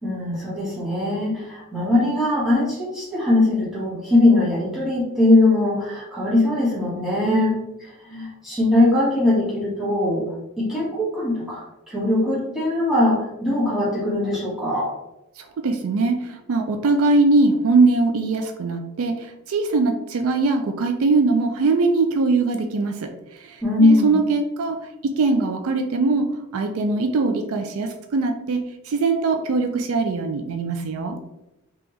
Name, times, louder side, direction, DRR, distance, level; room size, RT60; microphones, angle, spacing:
voice 1, 0.0-7.6 8.1-10.2 10.6-14.9 23.6-24.2, left 2 dB, ahead, -8 dB, 1.4 m, -20 dB
voice 2, 15.4-31.2, right 3 dB, 65° right, 5 dB, 0.4 m, -21 dB
3.4 x 2.9 x 3.1 m, 0.91 s
head